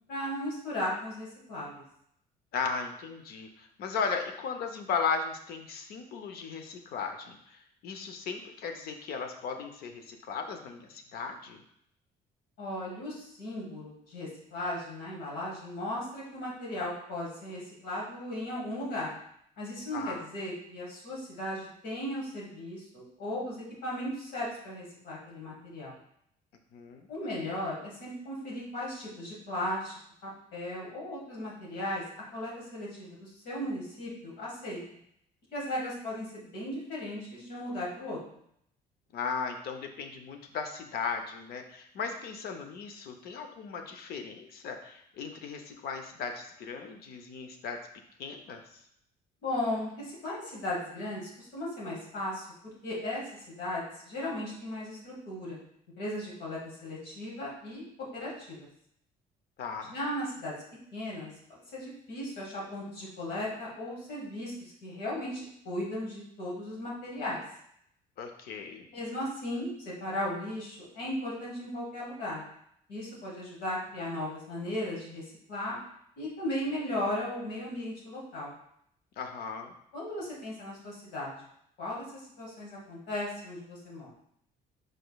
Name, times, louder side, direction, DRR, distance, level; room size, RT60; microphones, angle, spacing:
voice 1, 0.1-1.8 12.6-19.1 19.6-25.9 27.1-29.9 30.2-32.0 32.3-34.8 35.5-38.2 49.4-55.6 56.0-57.8 58.1-58.7 59.9-60.5 60.9-67.4 68.9-72.4 72.9-75.8 76.2-78.5 79.9-81.4 81.8-84.1, left 1 dB, 80° left, -4 dB, 1.7 m, -36 dB
voice 2, 2.5-11.6 19.9-20.2 26.7-27.1 39.1-47.8 48.2-48.8 59.6-59.9 68.2-68.9 79.2-79.7, left 5 dB, 65° left, 5 dB, 0.7 m, -36 dB
4.9 x 4.4 x 2.3 m, 0.71 s
cardioid pair, 110°, 17 cm